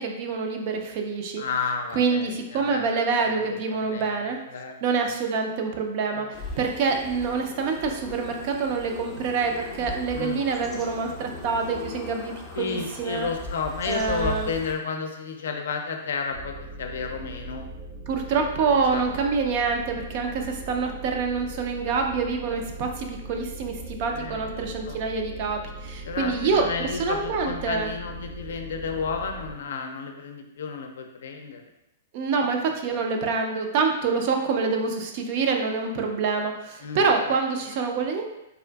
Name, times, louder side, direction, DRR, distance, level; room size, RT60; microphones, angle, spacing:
voice 1, 0.0-1.4 1.9-4.4 4.8-13.3 13.9-14.5 18.1-27.9 32.1-38.3, right 4 dB, 50° right, 3 dB, 0.4 m, -26 dB
voice 2, 1.4-2.2 2.5-2.8 3.2-3.4 3.7-4.2 4.5-4.7 6.1-6.3 10.1-10.4 12.5-17.7 18.3-19.0 24.1-24.5 24.9-25.0 26.1-31.6 32.9-33.0 36.8-37.1, left 5 dB, 75° left, 4 dB, 0.4 m, -32 dB
sound 1, 6.3-14.7, left 2 dB, 15° left, 0.5 m, -38 dB
sound 2, 16.3-29.5, right 1 dB, 70° right, 1.0 m, -40 dB
3.6 x 2.5 x 2.3 m, 0.90 s
hypercardioid pair, 130°, 0 cm